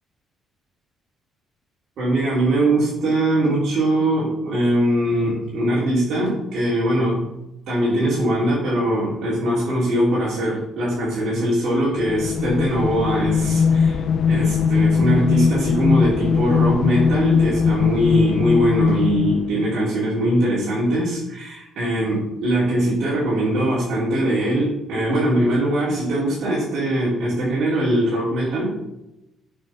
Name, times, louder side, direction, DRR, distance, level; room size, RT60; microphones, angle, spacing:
voice 1, 2.0-7.3 7.7-14.0 14.3-28.8, right 1 dB, 60° right, -8 dB, 3.4 m, -21 dB
sound 1, 12.0-19.7, left 6 dB, 50° left, 0.4 m, -20 dB
8.5 x 4.7 x 5.8 m, 0.90 s
cardioid pair, 155°, 0 cm